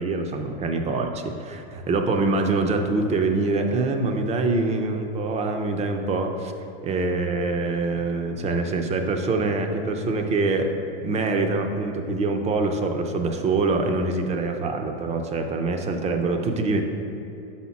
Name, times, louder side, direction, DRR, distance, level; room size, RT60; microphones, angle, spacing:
voice 1, 0.0-6.5 6.8-10.7 11.0-16.8, right 3 dB, 20° right, 5 dB, 0.6 m, -24 dB
5.5 x 4.3 x 5.8 m, 2.8 s
hypercardioid pair, 110°, 30 cm